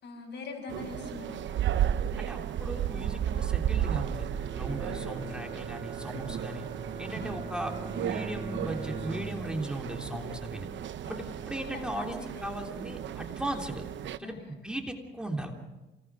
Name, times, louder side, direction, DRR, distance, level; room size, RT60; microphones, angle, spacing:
voice 1, 0.0-1.7 4.7-5.0 7.2-7.4 11.0-12.5 14.2-14.5, left 4 dB, 60° left, 3 dB, 6.3 m, -44 dB
sound 1, 0.7-14.2, right 10 dB, 70° right, 0.9 m, -34 dB
voice 2, 2.2-6.7 7.0-10.7 11.0-13.8 14.2-15.5, right 1 dB, 5° right, 1 dB, 3.2 m, -37 dB
Bowed string instrument, 4.3-9.8, right 2 dB, 20° right, 3.2 m, -41 dB
27.0 x 19.0 x 6.2 m, 1.1 s
cardioid pair, 90°, 20 cm